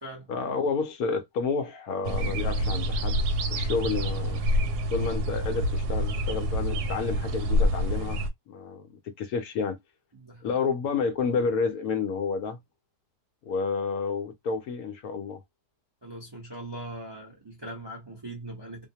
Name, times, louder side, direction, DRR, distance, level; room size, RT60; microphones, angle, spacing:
voice 1, 0.3-3.2 3.5-4.4 4.9-8.2 8.5-9.8 10.4-12.6 13.4-15.4, left 5 dB, 70° left, 1.0 m, -30 dB
sound 1, 2.0-8.3, equal, 75° right, 1.1 m, -27 dB
voice 2, 10.1-10.6 16.0-18.9, right 1 dB, 20° right, 0.6 m, -40 dB
2.7 x 2.2 x 2.7 m
omnidirectional pair, 1.8 m